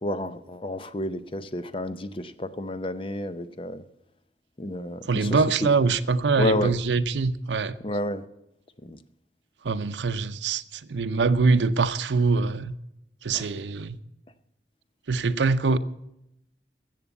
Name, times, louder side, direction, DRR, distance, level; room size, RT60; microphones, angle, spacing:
voice 1, 0.0-3.8 4.6-5.7 6.4-6.8 7.8-8.2 8.8-9.0 13.3-13.5, left 1 dB, 30° left, 0.6 m, -30 dB
voice 2, 5.1-7.7 9.6-10.6 10.9-12.7 13.2-14.0 15.1-15.8, right 4 dB, 90° right, 0.6 m, -23 dB
14.0 x 7.5 x 8.2 m
head